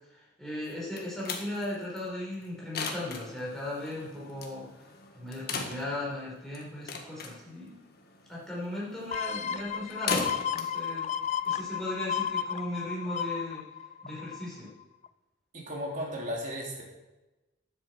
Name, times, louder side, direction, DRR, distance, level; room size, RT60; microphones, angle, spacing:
voice 1, 0.1-4.7 5.1-7.8 8.3-11.0 11.4-13.6 14.0-14.7, left 1 dB, 5° left, -7 dB, 5.1 m, -37 dB
sound 1, 0.6-12.1, left 4 dB, 55° left, 1.6 m, -39 dB
sound 2, 9.1-14.6 15.0-15.1, left 8 dB, 40° left, 0.3 m, -33 dB
voice 2, 15.5-16.8, equal, 40° right, -2 dB, 3.5 m, -35 dB
10.5 x 8.1 x 7.6 m, 1.1 s
head